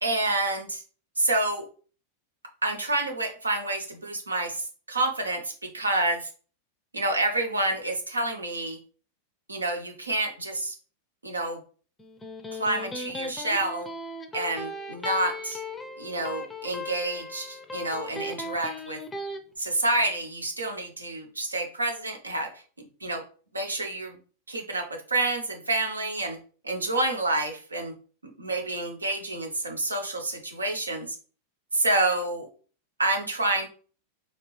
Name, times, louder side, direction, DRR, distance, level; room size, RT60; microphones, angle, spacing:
voice 1, 0.0-0.8 1.2-1.6 2.6-6.3 6.9-8.8 9.5-10.8 11.2-11.6 12.5-13.9 14.3-15.6 16.0-19.0 19.6-22.6 23.0-23.2 23.5-24.2 24.5-26.4 26.6-27.9 28.4-31.2 31.7-32.5 33.0-33.7, right 2 dB, 80° right, 3 dB, 0.9 m, -28 dB
Electric guitar, 12.0-19.4, left 2 dB, 10° left, 0.5 m, -37 dB
4.2 x 2.9 x 3.2 m, 0.40 s
figure-of-eight pair, 90°, 0 cm